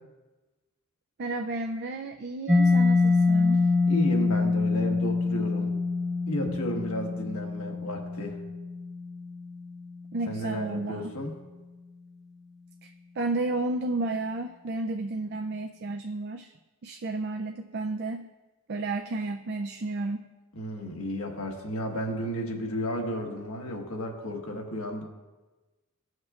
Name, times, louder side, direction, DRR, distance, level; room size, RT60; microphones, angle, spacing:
voice 1, 1.2-3.7 6.5-6.6 10.1-11.1 12.8-16.5 16.8-18.3 18.7-20.3, right 2 dB, 50° right, 5 dB, 0.4 m, -32 dB
Mallet percussion, 2.5-10.0, left 3 dB, ahead, 0.9 m, -25 dB
voice 2, 3.9-5.8 6.3-8.4 10.3-11.3 20.5-25.0, equal, 75° left, 1 dB, 1.4 m, -33 dB
16.0 x 6.4 x 2.4 m, 1.2 s
head